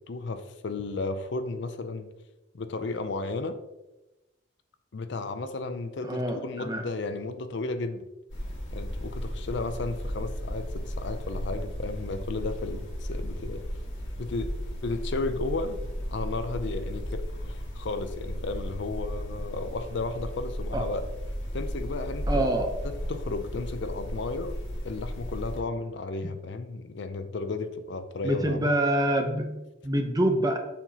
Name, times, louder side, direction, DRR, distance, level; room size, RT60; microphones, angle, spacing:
voice 1, 0.1-2.1 2.5-3.6 4.9-8.0 8.7-13.6 14.2-14.5 14.8-15.8 16.1-21.0 21.5-22.5 22.8-24.6 24.8-28.6, left 3 dB, 60° left, 9 dB, 0.5 m, -33 dB
voice 2, 6.0-6.8 20.7-20.9 22.3-22.7 28.2-30.6, right 1 dB, 20° right, 4 dB, 0.7 m, -26 dB
sound 1, 8.3-25.6, equal, 75° left, 1.7 m, -35 dB
7.2 x 5.7 x 2.8 m, 1.0 s
head